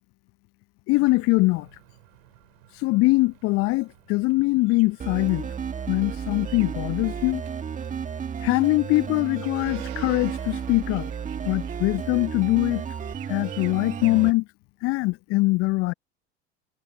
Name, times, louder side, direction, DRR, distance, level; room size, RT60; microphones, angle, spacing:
voice 1, 0.9-1.7 2.8-5.5 5.9-7.4 8.4-11.1 11.4-12.8 13.3-14.4 14.8-15.9, left 22 dB, 40° left, 0.7 m, -22 dB
sound 1, 1.1-14.2, right 28 dB, 55° right, 7.0 m, -50 dB
sound 2, 5.0-14.3, right 7 dB, 20° right, 1.8 m, -33 dB
figure-of-eight pair, 80°, 36 cm